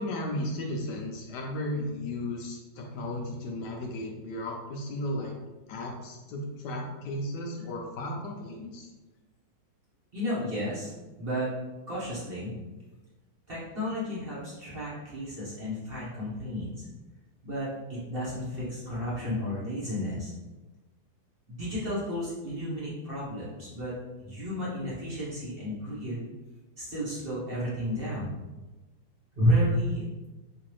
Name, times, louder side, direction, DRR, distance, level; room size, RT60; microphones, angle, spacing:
voice 1, 0.0-5.3 5.7-8.9, left 1 dB, 75° left, 0 dB, 1.1 m, -35 dB
voice 2, 10.1-10.9 11.2-11.5 11.9-12.5 13.5-16.9 17.4-20.3 21.5-23.9 24.2-26.3 26.8-28.4 29.4-30.0, equal, 40° right, -8 dB, 0.9 m, -32 dB
3.8 x 2.5 x 3.0 m, 1.1 s
omnidirectional pair, 2.1 m